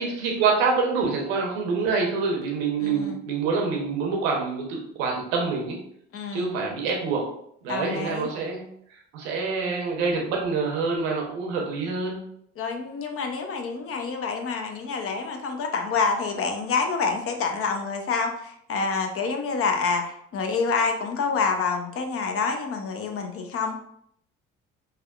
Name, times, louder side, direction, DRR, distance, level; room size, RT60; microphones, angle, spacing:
voice 1, 0.0-5.8 6.3-7.3 7.6-8.6 9.1-12.2, right 4 dB, 85° right, 0 dB, 0.8 m, -26 dB
voice 2, 2.8-3.2 6.1-6.5 7.7-8.3 12.6-23.7, left 5 dB, 50° left, 5 dB, 0.6 m, -27 dB
3.4 x 2.2 x 2.3 m, 0.69 s
supercardioid pair, 70°, 29 cm